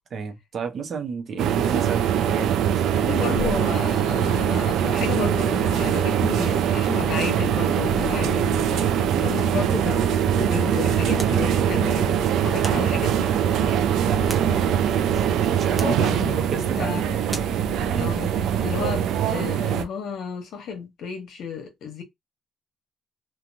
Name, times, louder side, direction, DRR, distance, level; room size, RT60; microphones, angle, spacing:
voice 1, 0.1-3.1 14.0-17.2 17.9-18.1, right 5 dB, 50° right, 0.7 m, -33 dB
sound 1, 1.4-19.8, right 9 dB, 85° right, 0.4 m, -22 dB
voice 2, 3.0-12.2 12.4-13.2 15.8-17.2 18.0-18.3 18.6-22.0, left 6 dB, 70° left, 1.0 m, -32 dB
sound 2, 7.9-19.0, left 4 dB, 35° left, 0.6 m, -41 dB
sound 3, 11.1-11.5 12.6-12.9 14.0-14.9 15.7-16.1 17.3-17.6, right 1 dB, 10° right, 0.6 m, -37 dB
3.0 x 2.3 x 2.5 m
cardioid pair, 130°, 0 cm